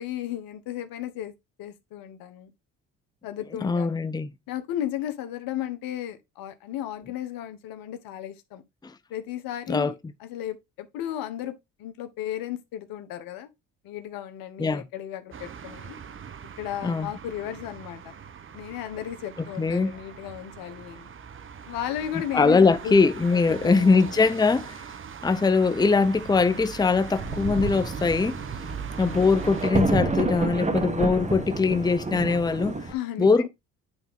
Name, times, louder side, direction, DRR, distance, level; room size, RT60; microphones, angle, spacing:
voice 1, 0.0-1.3 1.6-2.5 3.2-4.0 4.5-8.6 9.1-9.9 10.2-13.5 13.8-16.0 16.6-18.1 18.5-21.1 21.7-23.0 23.3-24.0 32.9-33.5, left 11 dB, 75° left, 1.2 m, -34 dB
voice 2, 3.6-4.3 8.8-8.9 9.7-9.9 14.6-14.8 16.8-17.1 19.6-19.9 22.3-24.8 25.2-28.4 29.0-32.8 33.2-33.5, left 4 dB, 10° left, 0.7 m, -22 dB
sound 1, 15.3-29.7, right 7 dB, 35° right, 0.9 m, -40 dB
Thunder, 26.8-26.9 27.2-32.9, right 3 dB, 20° right, 1.5 m, -29 dB
9.7 x 3.5 x 3.7 m
supercardioid pair, 65°, 35 cm